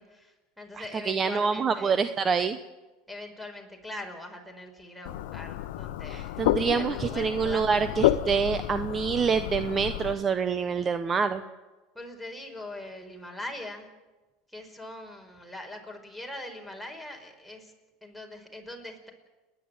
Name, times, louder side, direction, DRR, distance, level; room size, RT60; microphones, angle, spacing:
voice 1, 0.0-2.1 3.1-7.7 12.0-13.9 14.5-17.7 18.0-19.1, left 1 dB, ahead, 5 dB, 5.2 m, -42 dB
voice 2, 0.7-2.6 6.1-11.4, right 6 dB, 30° right, 11 dB, 1.0 m, -26 dB
sound 1, 5.0-10.1, left 13 dB, 75° left, 0.9 m, -30 dB
30.0 x 11.0 x 9.0 m, 1.2 s
hypercardioid pair, 90°, 0 cm